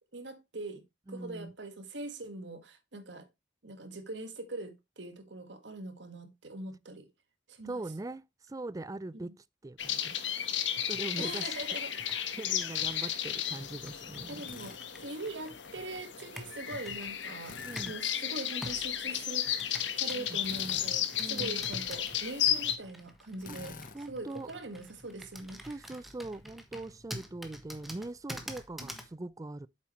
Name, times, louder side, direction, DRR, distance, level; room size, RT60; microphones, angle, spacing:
voice 1, 0.1-0.8 1.1-3.3 3.6-7.1 7.5-7.8 9.1-9.3 11.2-12.0 13.0-13.2 14.3-17.6 17.9-19.5 20.0-23.8 24.1-25.9 28.8-29.0, right 2 dB, 70° right, 1.7 m, -42 dB
voice 2, 1.1-1.5 7.6-9.3 9.6-10.5 10.9-11.5 12.1-14.4 17.6-17.9 20.2-20.4 21.2-21.6 23.5-23.6 23.9-24.5 25.7-29.7, right 2 dB, 20° right, 0.4 m, -41 dB
sound 1, 9.8-22.8, left 10 dB, 75° left, 1.3 m, -34 dB
Computer keyboard, 10.2-18.1 18.6-29.1, equal, ahead, 1.3 m, -48 dB
Drill, 14.4-14.8 17.4-17.9 20.4-21.0 23.4-24.0, left 4 dB, 50° left, 1.1 m, -47 dB
8.5 x 7.2 x 3.1 m
head